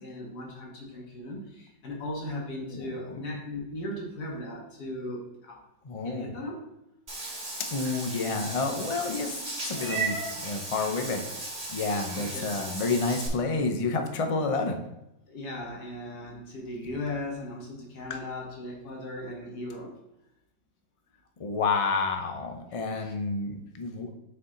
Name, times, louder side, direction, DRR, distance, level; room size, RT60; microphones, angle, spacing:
voice 1, 0.0-5.6 6.0-6.6 12.1-12.6 15.3-20.0 22.9-23.1, left 1 dB, 85° left, -1 dB, 2.0 m, -37 dB
voice 2, 2.7-3.2 5.8-6.3 7.6-9.4 9.7-11.3 11.7-14.8 21.4-24.1, left 3 dB, 40° left, 5 dB, 0.4 m, -29 dB
Meow / Water / Bathtub (filling or washing), 7.1-13.3, right 3 dB, 30° right, 1.7 m, -36 dB
6.9 x 4.5 x 3.9 m, 0.88 s
omnidirectional pair, 1.7 m